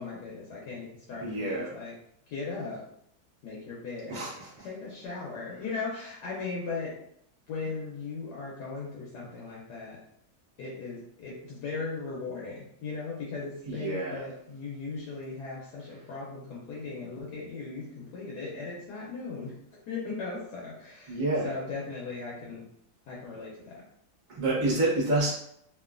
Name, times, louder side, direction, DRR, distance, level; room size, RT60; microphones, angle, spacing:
voice 1, 0.0-1.9 2.3-2.8 3.4-4.2 4.6-6.9 7.5-10.0 10.6-19.5 19.9-22.7 23.0-23.8, left 4 dB, 70° left, -4 dB, 1.1 m, -38 dB
voice 2, 1.2-1.7 4.1-4.7 13.6-14.2 21.1-21.5 24.3-25.3, right 2 dB, 35° right, -6 dB, 0.8 m, -28 dB
3.0 x 2.5 x 2.4 m, 0.73 s
omnidirectional pair, 2.0 m